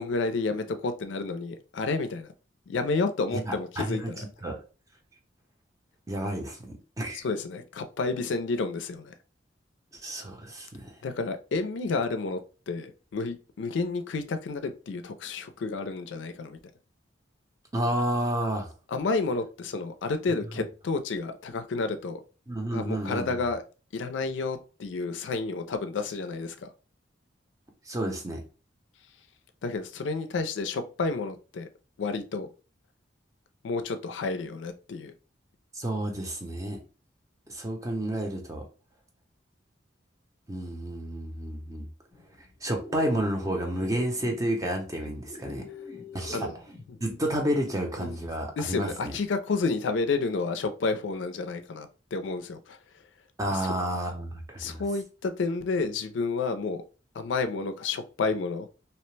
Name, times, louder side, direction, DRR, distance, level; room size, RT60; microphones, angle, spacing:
voice 1, 0.0-2.3 2.7-4.1 7.1-9.1 11.0-12.4 12.7-16.6 18.9-22.2 22.7-23.6 23.9-26.7 29.6-31.7 32.0-32.5 33.6-35.1 45.5-45.6 46.3-46.5 46.9-47.0 48.0-48.2 48.6-52.8 53.5-53.7 54.6-56.8 57.1-58.7, left 3 dB, 80° left, 0.4 m, -30 dB
voice 2, 3.3-4.6 6.1-7.2 9.9-10.9 17.7-18.7 20.6-20.7 22.5-23.4 27.9-28.4 35.7-36.8 37.5-38.6 40.5-41.9 42.6-45.6 46.1-46.5 47.0-49.2 53.4-54.8, right 1 dB, 20° right, 0.6 m, -30 dB
sound 1, 42.1-47.9, left 3 dB, 30° left, 0.6 m, -46 dB
2.8 x 2.1 x 3.1 m
head